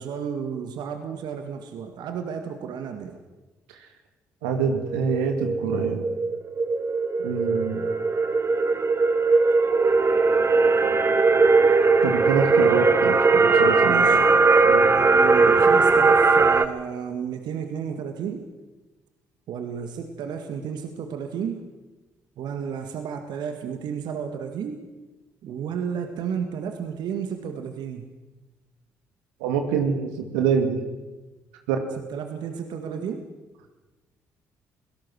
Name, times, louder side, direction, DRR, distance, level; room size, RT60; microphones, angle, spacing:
voice 1, 0.0-3.2 13.8-14.2 14.9-18.5 19.5-21.6 22.4-24.8 25.4-28.1 32.1-33.3, right 7 dB, 65° right, 6 dB, 1.9 m, -32 dB
voice 2, 4.4-6.0 7.2-7.8 12.0-14.3 14.6-14.9 29.4-30.8 31.7-31.8, right 6 dB, 80° right, 5 dB, 2.2 m, -25 dB
sound 1, 4.6-16.6, right 4 dB, 35° right, 1.5 m, -19 dB
26.0 x 17.5 x 6.3 m, 1.1 s
hypercardioid pair, 50°, 8 cm